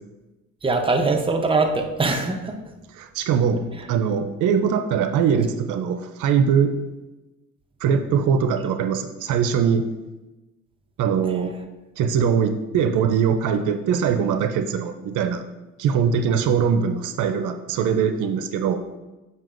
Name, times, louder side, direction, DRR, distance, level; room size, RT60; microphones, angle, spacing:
voice 1, 0.6-2.6, right 3 dB, 15° right, 4 dB, 0.7 m, -22 dB
voice 2, 2.9-3.6 3.9-6.8 7.8-9.9 11.0-11.5 12.0-15.4 15.8-18.8, right 7 dB, 80° right, 8 dB, 0.5 m, -22 dB
7.5 x 5.4 x 2.5 m, 1.1 s
cardioid pair, 90°, 30 cm